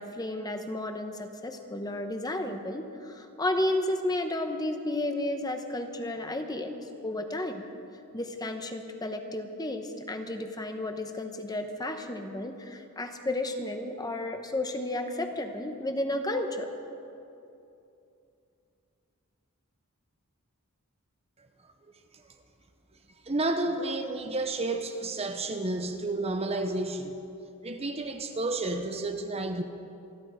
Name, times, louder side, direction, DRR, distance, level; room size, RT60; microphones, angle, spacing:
voice 1, 0.0-6.8 7.0-7.7 8.1-16.7, left 1 dB, 20° left, 6 dB, 1.0 m, -32 dB
voice 2, 23.3-27.1 27.6-29.6, right 2 dB, 30° right, 6 dB, 0.8 m, -31 dB
27.5 x 10.5 x 5.1 m, 2.7 s
head